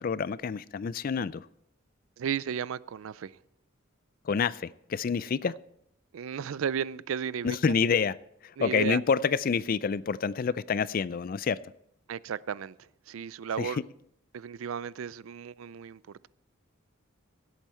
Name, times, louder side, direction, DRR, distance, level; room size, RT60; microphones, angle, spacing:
voice 1, 0.0-1.5 4.2-5.5 7.4-8.1 8.4-11.6 13.6-13.8, left 6 dB, 45° left, 0.3 m, -28 dB
voice 2, 2.2-3.4 6.1-7.6 8.6-9.0 12.1-13.8 14.3-16.3, right 7 dB, 80° right, 0.4 m, -34 dB
17.0 x 8.2 x 4.4 m
head